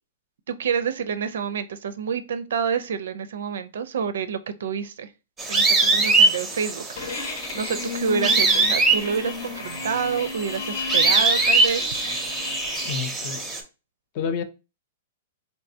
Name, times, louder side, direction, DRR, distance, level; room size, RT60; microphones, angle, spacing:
voice 1, 0.5-5.1 5.5-12.0, right 6 dB, 75° right, 0.4 m, -28 dB
sound 1, 5.4-13.6, right 3 dB, 10° right, 0.6 m, -22 dB
sound 2, 7.0-13.0, left 4 dB, 55° left, 0.8 m, -33 dB
voice 2, 12.9-13.6 14.1-14.4, left 6 dB, 35° left, 0.4 m, -29 dB
3.3 x 2.7 x 2.7 m
hypercardioid pair, 165°, 0 cm